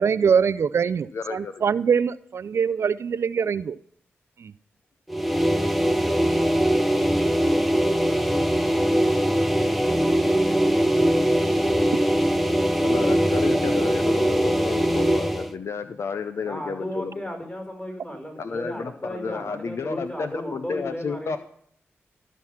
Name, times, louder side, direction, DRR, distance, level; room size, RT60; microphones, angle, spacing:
voice 1, 0.0-3.8 4.4-4.5, right 6 dB, 65° right, 16 dB, 0.4 m, -23 dB
voice 2, 1.1-1.6 12.8-17.2 18.4-21.4, left 5 dB, 65° left, 9 dB, 0.6 m, -32 dB
sound 1, 5.1-15.5, equal, ahead, 0.9 m, -21 dB
voice 3, 16.3-21.4, left 1 dB, 30° left, 2 dB, 4.9 m, -34 dB
13.5 x 6.2 x 5.7 m, 0.66 s
cardioid pair, 45°, 5 cm